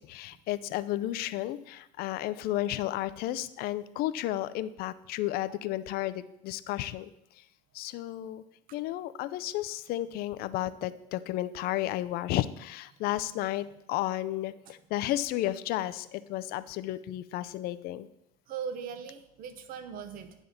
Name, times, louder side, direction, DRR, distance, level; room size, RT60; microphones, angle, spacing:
voice 1, 0.0-7.1 7.7-8.4 8.7-18.1, left 14 dB, 50° left, 15 dB, 0.5 m, -33 dB
voice 2, 18.5-20.4, right 7 dB, 45° right, 10 dB, 1.0 m, -39 dB
9.8 x 3.6 x 7.0 m, 0.80 s
supercardioid pair, 115°, 20 cm